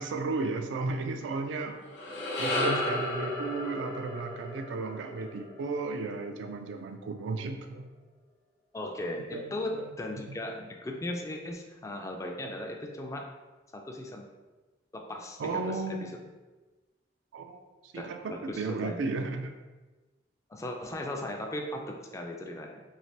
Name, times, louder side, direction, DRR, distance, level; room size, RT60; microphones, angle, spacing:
voice 1, 0.0-1.8 2.4-7.9 9.3-9.9 10.3-10.4 15.4-16.2 17.3-19.5, right 3 dB, 80° right, 6 dB, 0.3 m, -34 dB
sound 1, 1.8-6.2, left 1 dB, 65° left, 0.7 m, -34 dB
voice 2, 8.7-13.3 13.7-14.3 14.9-15.7 17.9-19.0 20.5-22.8, left 1 dB, 15° left, 2 dB, 0.3 m, -37 dB
3.2 x 2.8 x 2.7 m, 1.2 s
head